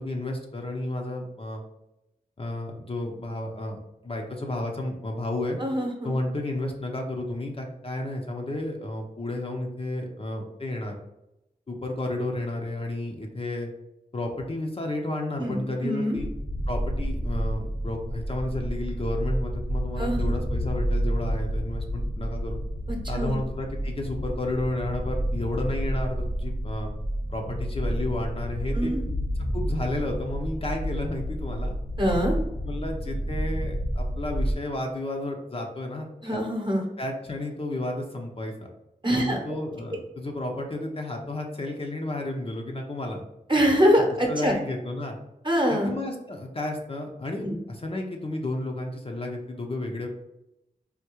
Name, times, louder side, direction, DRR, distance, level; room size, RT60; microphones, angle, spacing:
voice 1, 0.0-1.6 2.4-5.6 6.0-10.9 11.7-13.7 14.1-16.3 16.7-22.6 23.1-26.9 27.3-28.9 29.5-31.7 32.6-36.4 37.0-38.5 39.1-43.2 44.3-45.2 45.7-50.1, left 1 dB, 35° left, 1 dB, 0.6 m, -32 dB
voice 2, 5.6-6.1 15.4-16.2 20.0-20.3 22.9-23.3 28.7-29.0 32.0-32.4 36.2-36.8 39.0-39.4 43.5-44.6 45.4-45.9 47.4-47.6, equal, 30° right, 1 dB, 0.9 m, -24 dB
sound 1, 16.1-34.5, equal, 5° left, 0.8 m, -29 dB
3.5 x 2.3 x 2.9 m, 0.89 s
cardioid pair, 40°, 16 cm